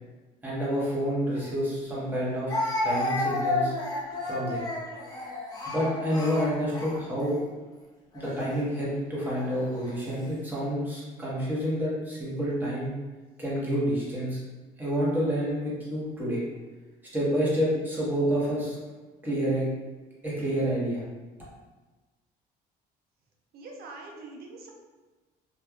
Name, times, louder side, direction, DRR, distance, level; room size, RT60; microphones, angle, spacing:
voice 1, 0.4-2.6 2.8-3.7 4.2-4.7 5.7-7.4 8.1-12.9 13.4-14.4 14.8-16.4 17.1-18.8 19.2-19.7 20.2-21.0, equal, 10° right, -7 dB, 1.1 m, -28 dB
Speech, 1.4-1.5 2.5-7.4 8.1-8.4 9.4-9.9, left 2 dB, 20° left, 0.7 m, -31 dB
voice 2, 23.5-24.7, right 3 dB, 65° right, 0 dB, 0.6 m, -43 dB
3.1 x 2.5 x 2.2 m, 1.2 s
cardioid pair, 110°, 17 cm